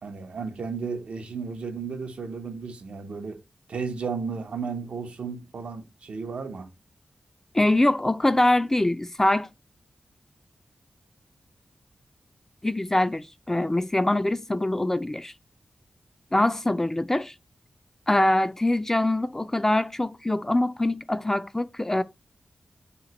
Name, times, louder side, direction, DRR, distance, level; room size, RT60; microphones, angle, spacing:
voice 1, 0.0-3.4 3.7-6.7, right 5 dB, 80° right, 0.6 m, -34 dB
voice 2, 7.5-9.5 12.6-15.3 16.3-17.3 18.1-22.0, left 1 dB, 20° left, 0.3 m, -23 dB
2.9 x 2.1 x 4.0 m
cardioid pair, 45°, 2 cm